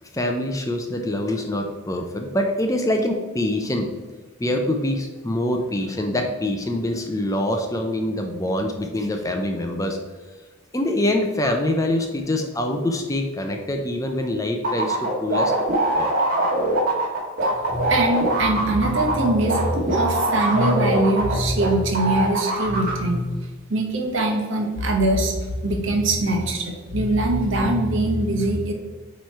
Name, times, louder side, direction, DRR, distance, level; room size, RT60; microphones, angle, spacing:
voice 1, 0.0-3.9 4.4-10.0 10.7-15.5 15.9-16.1, left 1 dB, 15° left, 4 dB, 0.5 m, -25 dB
sound 1, 14.6-21.7 21.9-22.9, right 1 dB, 40° right, 1.8 m, -22 dB
voice 2, 17.7-25.3 25.6-28.7, right 1 dB, 55° right, 2 dB, 1.2 m, -22 dB
8.6 x 3.2 x 4.6 m, 1.3 s
head